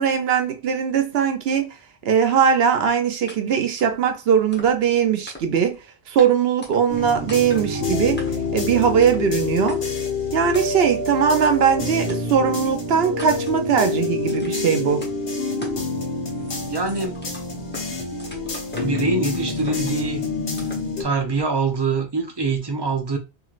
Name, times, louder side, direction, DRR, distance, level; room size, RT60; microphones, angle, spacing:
voice 1, 0.0-1.8 2.0-5.8 6.1-8.2 8.5-9.8 10.3-15.1, right 7 dB, 70° right, 0.8 m, -20 dB
sound 1, 3.3-3.4 3.8-4.0 4.5-4.9 5.3-5.7 6.2-6.3 6.6-7.0 7.3-7.7 8.2-8.5 9.0-9.3 9.7-9.8 10.5-10.9 11.4-11.5 12.1-12.2 12.6-12.7 13.2-13.6 14.2-14.7 15.0-15.1 15.6-15.9 16.2-17.9 18.2-19.1 19.5-20.1 20.6-20.9, left 1 dB, 10° left, 0.7 m, -40 dB
sound 2, 6.9-21.0, left 3 dB, 65° left, 1.1 m, -27 dB
voice 2, 16.7-17.2 18.8-20.2 21.0-23.2, right 4 dB, 30° right, 0.6 m, -24 dB
3.1 x 2.9 x 2.4 m
omnidirectional pair, 1.1 m